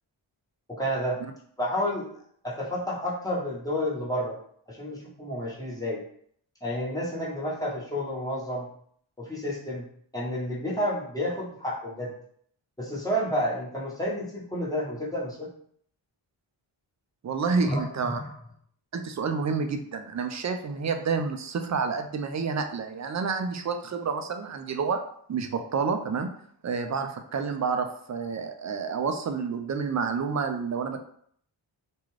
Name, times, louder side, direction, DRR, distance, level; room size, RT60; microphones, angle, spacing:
voice 1, 0.7-1.2 1.6-2.1 2.4-4.4 4.7-6.0 6.6-8.7 9.2-9.9 10.1-12.1 12.8-15.5 17.6-17.8 18.1-18.3, equal, 5° left, -6 dB, 1.1 m, -30 dB
voice 2, 17.2-18.2 18.9-25.0 25.3-26.3 26.6-31.0, right 5 dB, 35° right, 6 dB, 0.4 m, -29 dB
2.4 x 2.3 x 3.1 m, 0.63 s
cardioid pair, 45°, 50 cm